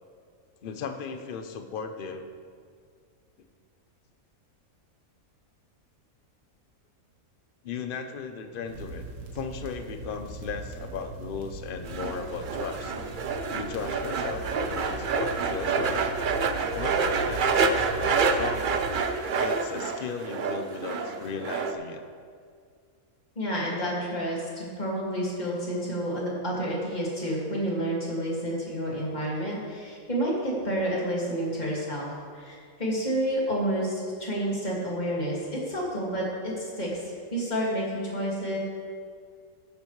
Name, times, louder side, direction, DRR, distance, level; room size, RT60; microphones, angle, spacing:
voice 1, 0.6-2.3 7.6-9.1 9.3-13.1 13.5-16.0 16.7-18.9 19.3-22.0, left 5 dB, 50° left, 7 dB, 0.7 m, -36 dB
sound 1, 8.6-19.0, right 3 dB, 75° right, 1.6 m, -40 dB
sound 2, 11.8-21.7, right 5 dB, 55° right, 0.5 m, -28 dB
voice 2, 23.4-32.1 32.3-37.0 37.3-38.6, equal, 30° left, -5 dB, 2.3 m, -29 dB
12.5 x 9.7 x 3.2 m, 2.1 s
omnidirectional pair, 1.5 m